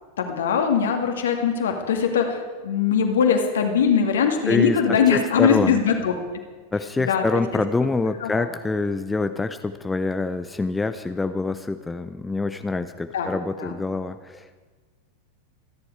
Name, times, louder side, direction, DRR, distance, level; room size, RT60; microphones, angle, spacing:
voice 1, 0.2-6.1 7.0-7.4 8.2-8.5 13.1-13.3 13.6-13.7, left 7 dB, 65° left, 4 dB, 2.2 m, -21 dB
voice 2, 4.5-5.8 6.7-14.6, left 3 dB, 10° left, 10 dB, 0.6 m, -26 dB
26.5 x 10.5 x 4.8 m, 1.4 s
figure-of-eight pair, 90°, 0 cm